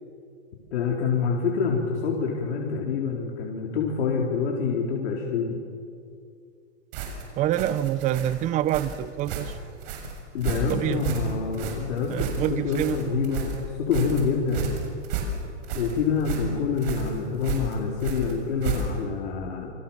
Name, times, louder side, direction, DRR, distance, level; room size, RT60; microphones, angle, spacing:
voice 1, 0.7-5.6 10.3-14.7 15.7-19.7, left 5 dB, 65° left, -1 dB, 4.2 m, -27 dB
sound 1, 6.9-19.2, right 5 dB, 50° right, 7.0 m, -32 dB
voice 2, 7.4-9.6 10.7-11.0 12.1-13.2, right 12 dB, 20° right, 15 dB, 0.7 m, -26 dB
28.0 x 26.5 x 7.3 m, 2.4 s
hypercardioid pair, 145°, 36 cm